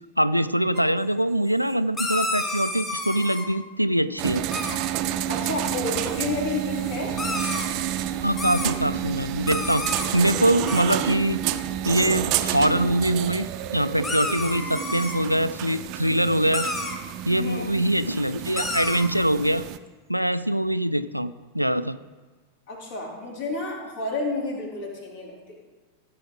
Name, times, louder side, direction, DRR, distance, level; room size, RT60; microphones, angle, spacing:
voice 1, 0.2-4.4 8.2-9.9 10.1-11.4 11.8-13.5 13.7-16.7 17.3-19.6 20.1-22.0, right 1 dB, 90° right, 13 dB, 0.4 m, -23 dB
sound 1, 0.7-0.8 1.7-3.5 4.5-4.8 5.9-7.7 8.3-8.7 9.5-10.1 10.4-10.5 10.7-10.8 12.0-12.2 13.2-13.3 14.0-15.2 15.7-15.8 16.1-17.0 18.0-18.1 18.6-19.1, left 2 dB, 20° left, 1.8 m, -31 dB
sound 2, 4.2-19.8, right 12 dB, 40° right, 0.6 m, -30 dB
voice 2, 5.3-7.2 17.3-17.6 22.7-25.5, left 2 dB, 55° left, -2 dB, 3.7 m, -30 dB
15.5 x 8.6 x 3.8 m, 1.3 s
figure-of-eight pair, 90°, 0 cm